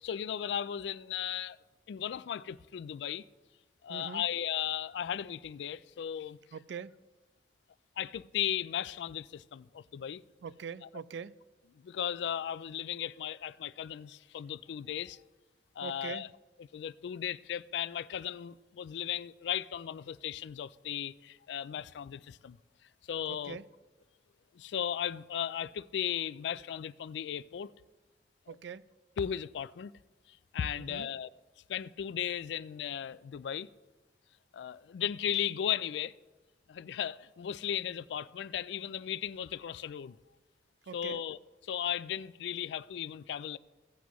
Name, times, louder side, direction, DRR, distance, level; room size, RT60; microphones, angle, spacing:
voice 1, 0.0-1.6 1.9-3.2 3.8-6.4 8.0-10.2 11.8-15.2 15.8-16.3 16.7-22.6 23.1-23.6 24.5-27.7 28.5-28.6 29.2-29.9 30.3-31.3 31.7-33.7 34.5-36.1 36.7-40.2 40.9-43.6, left 9 dB, 70° left, 0.3 m, -36 dB
voice 2, 3.9-4.3 6.5-6.9 10.4-11.4 15.8-16.2 23.3-23.7 28.5-28.9 30.7-31.1 40.8-41.2, right 6 dB, 70° right, 0.3 m, -43 dB
17.0 x 8.1 x 3.0 m
head